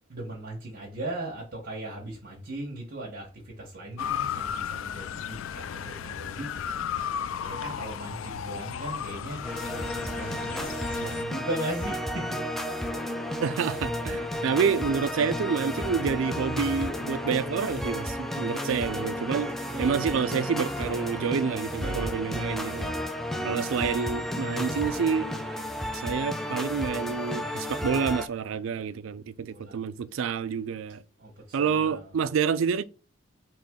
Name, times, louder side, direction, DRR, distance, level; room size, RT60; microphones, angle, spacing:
voice 1, 0.1-6.9 7.4-9.4 10.1-12.6 19.7-20.0 22.3-22.4 29.4-29.8 31.2-32.1, right 1 dB, 50° right, 1.1 m, -38 dB
Motor vehicle (road) / Siren, 4.0-11.2, left 8 dB, 75° left, 0.3 m, -34 dB
sound 1, 9.4-28.3, left 1 dB, ahead, 0.3 m, -32 dB
voice 2, 13.4-19.5 19.8-22.9 23.4-25.3 25.9-31.0 31.5-32.8, right 6 dB, 75° right, 0.3 m, -28 dB
4.2 x 3.0 x 3.6 m
head